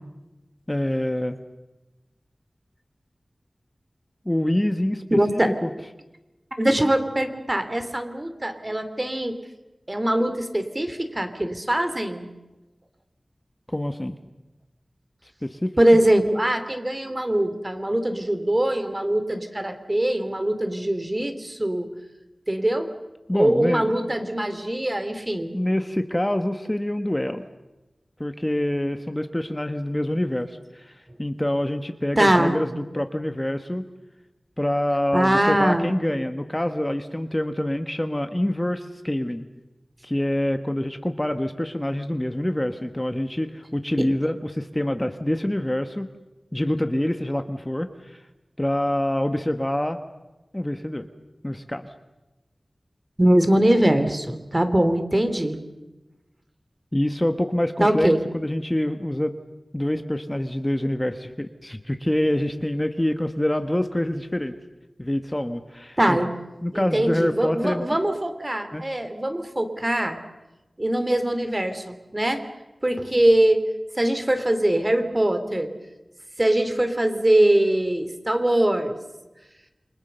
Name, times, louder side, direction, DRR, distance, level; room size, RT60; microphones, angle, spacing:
voice 1, 0.7-1.3 4.2-5.0 5.6-5.7 13.7-14.1 15.4-15.7 23.3-23.9 25.5-27.5 28.2-33.9 34.6-39.5 40.0-46.1 46.5-48.2 48.6-50.0 50.5-51.1 51.4-51.9 56.9-59.3 59.7-64.6 65.0-66.2 66.6-67.8 68.7-68.8, left 1 dB, 20° left, 8 dB, 1.3 m, -26 dB
voice 2, 5.1-5.5 6.5-9.4 9.9-12.3 15.8-21.9 22.5-22.9 23.3-25.6 32.2-32.6 35.1-35.9 53.2-55.6 57.8-58.2 66.0-66.3 66.7-70.2 70.8-72.5 72.8-73.6 73.9-75.7 76.4-79.0, right 1 dB, 30° right, 8 dB, 2.9 m, -22 dB
28.5 x 24.0 x 6.8 m, 1.0 s
wide cardioid pair, 60°, 0 cm